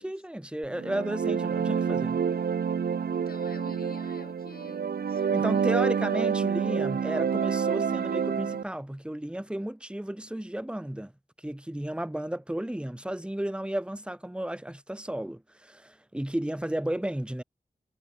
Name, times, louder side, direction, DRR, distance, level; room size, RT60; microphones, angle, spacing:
voice 1, 0.0-2.2 5.3-11.1 11.4-17.4, right 1 dB, 5° right, 1.3 m, -33 dB
sound 1, 0.7-8.6, right 6 dB, 90° right, 0.9 m, -28 dB
voice 2, 3.1-6.2, left 4 dB, 75° left, 7.1 m, -49 dB
wide cardioid pair, 60°, 16 cm